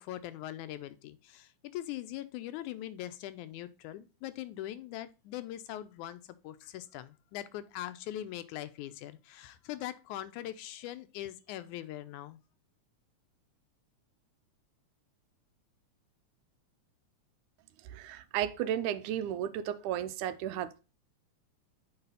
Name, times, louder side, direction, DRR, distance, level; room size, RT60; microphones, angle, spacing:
voice 1, 0.0-12.4, left 13 dB, 85° left, 2.1 m, -41 dB
voice 2, 17.8-20.8, right 10 dB, 85° right, 2.1 m, -34 dB
6.8 x 4.8 x 5.4 m
omnidirectional pair, 3.5 m